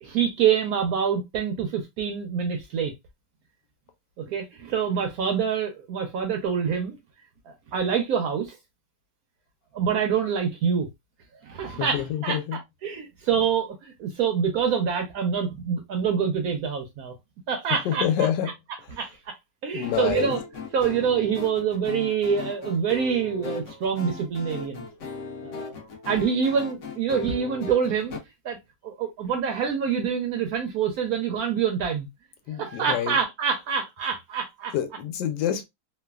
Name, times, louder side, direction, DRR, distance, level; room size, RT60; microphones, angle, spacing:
voice 1, 0.0-2.9 4.2-7.0 7.5-8.6 9.7-10.9 11.4-12.4 12.8-17.1 17.5-18.3 18.9-19.4 19.6-20.4 20.7-24.9 25.4-25.8 26.0-28.2 28.4-28.6 28.8-32.1 32.5-34.7, right 7 dB, 75° right, 0.8 m, -26 dB
voice 2, 11.7-12.6 17.8-18.5 19.7-20.3 32.5-33.2 34.7-35.6, left 10 dB, 75° left, 1.2 m, -27 dB
sound 1, 19.8-28.2, left 4 dB, 60° left, 0.8 m, -38 dB
3.2 x 2.2 x 2.2 m
omnidirectional pair, 2.0 m